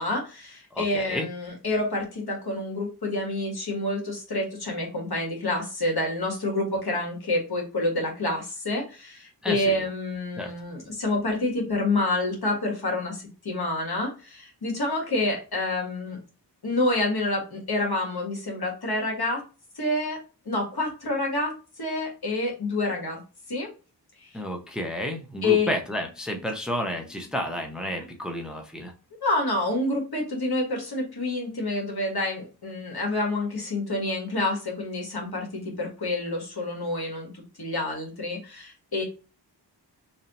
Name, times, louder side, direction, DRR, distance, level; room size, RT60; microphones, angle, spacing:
voice 1, 0.0-16.2 16.6-19.4 19.7-20.2 20.4-23.2 23.5-23.7 24.2-24.3 25.4-25.7 29.2-39.0, left 2 dB, 65° left, 0 dB, 1.7 m, -28 dB
voice 2, 0.7-1.3 9.4-9.8 10.4-10.5 24.3-28.9, equal, ahead, 4 dB, 0.7 m, -31 dB
3.2 x 2.7 x 4.0 m, 0.33 s
cardioid pair, 50°, 41 cm